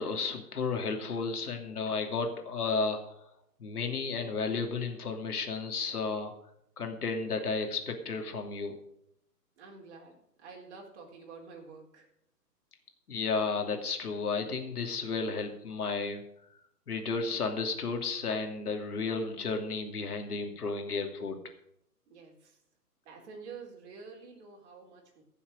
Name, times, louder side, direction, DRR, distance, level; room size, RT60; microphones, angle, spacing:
voice 1, 0.0-3.0 3.6-6.3 6.8-8.7 13.1-16.2 16.9-21.4, left 4 dB, 65° left, 4 dB, 2.8 m, -33 dB
voice 2, 9.6-12.1 22.1-22.6 23.0-25.2, right 5 dB, 45° right, 0 dB, 4.2 m, -49 dB
16.0 x 7.1 x 6.6 m, 0.74 s
figure-of-eight pair, 130°, 48 cm